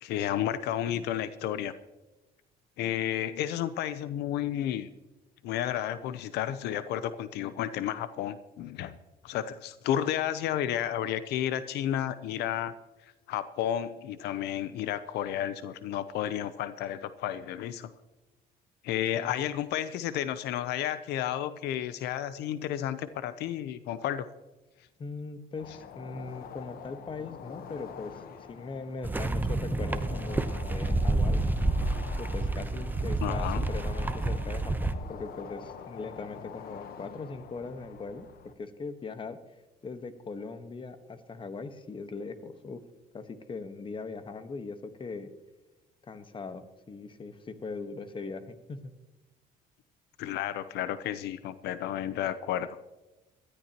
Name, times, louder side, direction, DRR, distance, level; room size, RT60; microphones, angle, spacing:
voice 1, 0.0-1.7 2.8-4.9 5.4-9.0 9.2-12.7 13.3-17.9 18.8-24.3 33.2-33.7 50.2-52.8, left 11 dB, 80° left, 13 dB, 0.7 m, -32 dB
voice 2, 25.0-31.4 32.2-38.3 38.6-39.4 39.8-42.8 43.1-45.3 46.0-48.9, left 4 dB, 30° left, 10 dB, 1.3 m, -40 dB
sound 1, 25.6-38.5, left 7 dB, 60° left, 1.1 m, -46 dB
sound 2, 29.0-34.9, right 2 dB, 10° right, 0.8 m, -29 dB
21.0 x 13.5 x 3.0 m, 1.1 s
cardioid pair, 110°, 17 cm